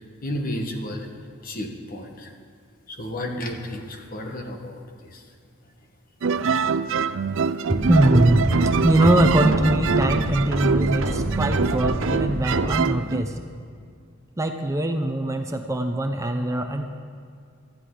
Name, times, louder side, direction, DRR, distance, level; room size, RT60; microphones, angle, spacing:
voice 1, 0.2-1.1 1.4-2.3 2.9-5.2 6.3-6.7 7.4-7.8, left 1 dB, 45° left, 3 dB, 1.4 m, -33 dB
sound 1, 6.2-13.2, right 5 dB, 65° right, 0.4 m, -25 dB
sound 2, 7.7-12.8, right 1 dB, 80° right, 1.4 m, -27 dB
voice 2, 7.8-13.4 14.4-16.9, right 1 dB, 15° right, 5 dB, 0.7 m, -22 dB
18.0 x 13.0 x 3.9 m, 2.2 s
head